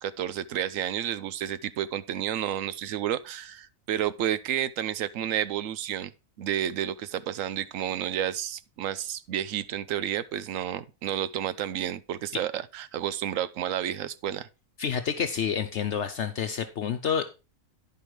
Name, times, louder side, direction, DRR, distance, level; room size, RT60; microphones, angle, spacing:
voice 1, 0.0-6.1 6.4-14.5, right 10 dB, 75° right, 1.0 m, -31 dB
voice 2, 14.8-17.3, left 7 dB, 60° left, 1.0 m, -29 dB
10.5 x 5.3 x 4.7 m
omnidirectional pair, 1.4 m